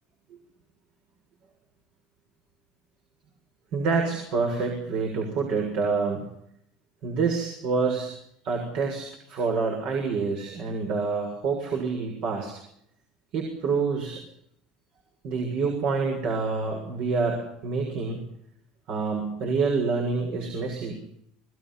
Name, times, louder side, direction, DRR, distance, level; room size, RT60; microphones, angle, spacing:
voice 1, 3.7-6.2 7.0-8.1 8.4-12.5 13.3-14.2 15.2-18.2 18.9-21.0, right 4 dB, 60° right, 2 dB, 7.0 m, -27 dB
27.5 x 21.0 x 5.9 m, 0.74 s
supercardioid pair, 110°, 2 cm